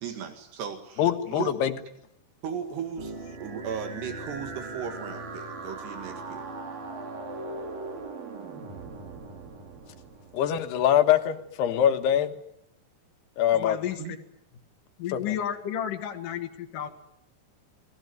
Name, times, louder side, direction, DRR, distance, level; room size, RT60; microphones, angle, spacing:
voice 1, 0.0-1.5 2.4-3.1 3.4-6.4 14.0-14.2, right 8 dB, 80° right, 6 dB, 4.1 m, -36 dB
voice 2, 1.0-1.7 10.3-12.3 13.4-13.8 15.1-15.4, left 10 dB, 75° left, 7 dB, 3.5 m, -23 dB
sound 1, 3.0-8.1, right 1 dB, 35° right, 1.0 m, -41 dB
sound 2, 3.2-11.1, right 4 dB, 55° right, 5.1 m, -42 dB
voice 3, 13.4-14.2 15.0-16.9, left 10 dB, 60° left, 3 dB, 2.9 m, -32 dB
28.0 x 20.0 x 9.3 m, 0.78 s
omnidirectional pair, 4.8 m